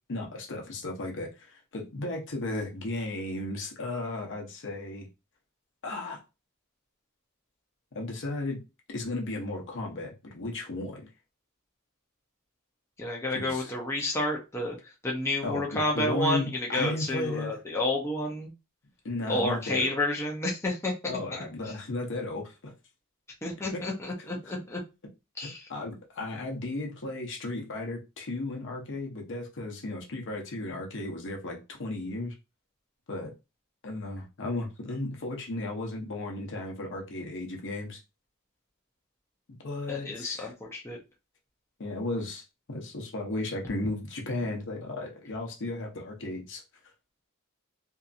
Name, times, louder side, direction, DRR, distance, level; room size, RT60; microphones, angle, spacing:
voice 1, 0.1-5.1 5.8-6.2 7.9-8.6 8.9-11.1 13.3-13.7 15.4-17.6 19.0-19.9 21.0-22.7 23.7-23.8 24.2-24.6 25.7-32.3 33.1-33.3 33.8-38.0 39.6-40.5 41.8-46.6, left 2 dB, 60° left, 1 dB, 0.8 m, -35 dB
voice 2, 13.0-14.8 15.0-18.5 19.3-20.9 23.4-24.8 25.4-25.7 39.9-41.0, left 1 dB, 10° left, -2 dB, 0.5 m, -30 dB
2.7 x 2.5 x 2.4 m, 0.28 s
head